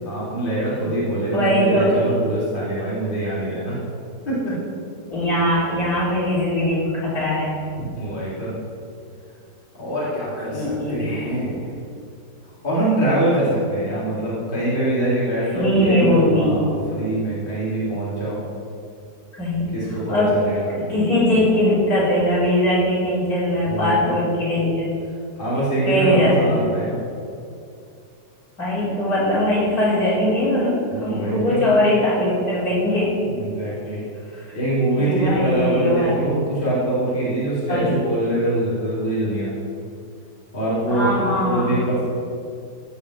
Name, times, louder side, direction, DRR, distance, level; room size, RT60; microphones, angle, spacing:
voice 1, 0.0-3.8 4.2-4.6 8.0-8.5 9.7-11.5 12.6-18.4 19.7-20.6 23.7-24.1 25.3-27.0 30.9-31.7 33.2-34.0 34.5-39.5 40.5-42.2, right 1 dB, 25° left, -9 dB, 3.4 m, -23 dB
voice 2, 1.3-2.1 5.1-7.5 10.5-11.4 13.9-14.0 15.5-16.6 19.3-19.6 19.9-20.3 20.9-24.9 25.8-26.5 28.6-30.7 31.0-33.1 33.7-33.8 34.3-34.4 35.0-36.1 37.7-37.9 40.9-41.8, left 1 dB, 50° left, -8 dB, 4.0 m, -20 dB
16.0 x 5.6 x 6.4 m, 2.4 s
omnidirectional pair, 2.0 m